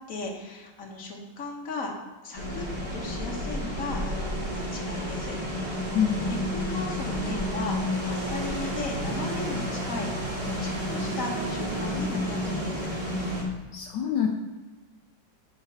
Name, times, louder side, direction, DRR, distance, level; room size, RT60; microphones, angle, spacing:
voice 1, 0.1-1.9 2.2-2.6 2.9-12.9, left 3 dB, 45° left, 0 dB, 1.9 m, -37 dB
sound 1, 2.4-13.4, equal, 25° right, 2.6 m, -31 dB
voice 2, 13.7-14.3, left 9 dB, 75° left, 1 dB, 1.4 m, -25 dB
7.9 x 4.4 x 7.2 m, 1.3 s
omnidirectional pair, 2.0 m